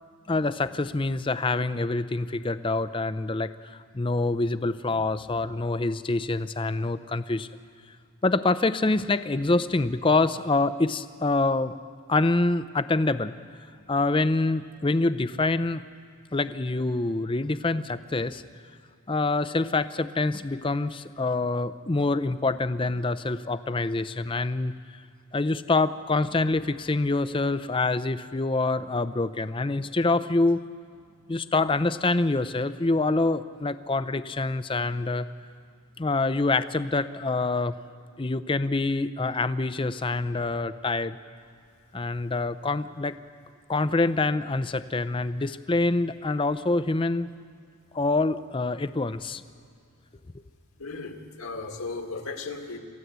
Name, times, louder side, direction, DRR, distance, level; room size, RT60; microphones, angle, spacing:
voice 1, 0.3-7.5 8.2-11.7 12.1-13.3 13.9-15.8 16.3-18.4 19.1-24.7 25.3-30.6 31.3-35.3 36.0-37.8 38.2-41.2 41.9-43.1 43.7-47.3 47.9-49.4, left 2 dB, 20° left, 13 dB, 0.5 m, -26 dB
voice 2, 50.8-52.8, left 3 dB, 75° left, 3 dB, 2.1 m, -36 dB
27.0 x 14.0 x 8.1 m, 2.2 s
head